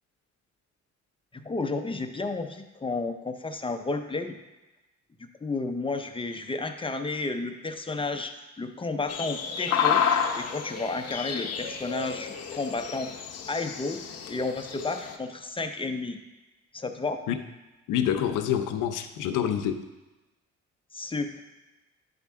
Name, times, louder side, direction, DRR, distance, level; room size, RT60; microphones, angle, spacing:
voice 1, 1.3-4.4 5.4-10.0 10.3-13.1 13.5-14.0 14.3-16.2 16.7-17.2 20.9-21.4, left 3 dB, 15° left, 6 dB, 0.6 m, -32 dB
sound 1, 9.1-15.1, left 7 dB, 55° left, 0.8 m, -30 dB
voice 2, 17.9-19.9, left 9 dB, 90° left, 8 dB, 0.6 m, -27 dB
10.5 x 4.2 x 3.6 m, 1.1 s
cardioid pair, 90°, 30 cm